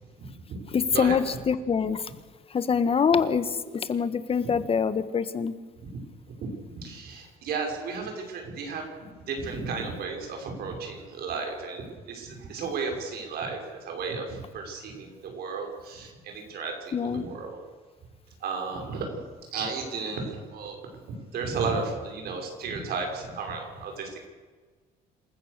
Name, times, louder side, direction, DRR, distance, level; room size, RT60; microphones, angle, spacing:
voice 1, 0.2-0.6 0.9-1.2 4.4-4.5 6.4-8.8 9.3-17.6 18.4-19.2 19.5-20.8 21.1-24.3, right 4 dB, 65° right, 3 dB, 5.7 m, -34 dB
voice 2, 0.7-2.0 2.5-5.5 16.9-17.2, left 6 dB, 35° left, 13 dB, 1.4 m, -25 dB
27.0 x 15.0 x 6.7 m, 1.4 s
cardioid pair, 110°, 17 cm